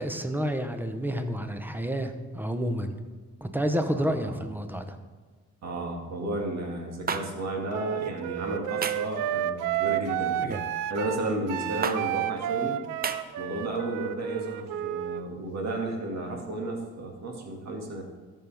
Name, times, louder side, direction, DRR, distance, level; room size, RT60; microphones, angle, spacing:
voice 1, 0.0-2.9 3.4-5.0, equal, 5° right, 7 dB, 0.9 m, -29 dB
voice 2, 4.0-4.4 5.6-10.5 10.9-12.8 13.4-18.0, right 2 dB, 60° right, 1 dB, 2.1 m, -33 dB
sound 1, 7.1-7.2 8.8-9.1 10.4-10.7 11.8-12.0 13.0-13.2, right 5 dB, 30° right, 0.6 m, -30 dB
Wind instrument woodwind instrument, 7.7-15.2, right 11 dB, 85° right, 0.5 m, -31 dB
13.5 x 5.5 x 3.5 m, 1.5 s
cardioid pair, 90°, 30 cm